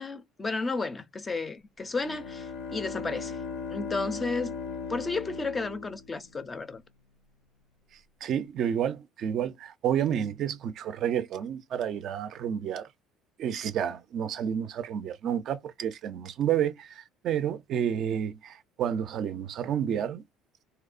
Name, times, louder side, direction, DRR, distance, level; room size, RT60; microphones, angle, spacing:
voice 1, 0.0-3.4 3.7-4.5 4.9-6.8, left 3 dB, 20° left, 0.4 m, -32 dB
Bowed string instrument, 1.9-6.6, left 5 dB, 80° left, 0.6 m, -38 dB
voice 2, 8.2-12.9 13.4-20.2, right 9 dB, 55° right, 0.3 m, -30 dB
2.8 x 2.0 x 2.4 m
cardioid pair, 110°, 0 cm